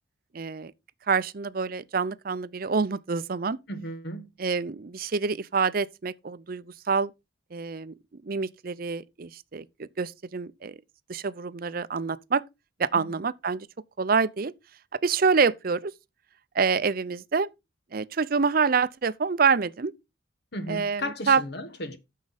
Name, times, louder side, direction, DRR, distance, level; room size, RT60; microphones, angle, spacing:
voice 1, 0.3-0.7 1.1-3.6 4.4-7.1 7.5-10.8 11.1-12.4 12.8-13.7 14.0-14.5 15.0-15.9 16.5-17.5 17.9-19.9 20.7-21.4, right 5 dB, 50° right, 0.6 m, -26 dB
voice 2, 3.7-4.3 12.9-13.0 20.5-22.0, equal, 60° left, 1.3 m, -35 dB
9.6 x 6.6 x 4.0 m
head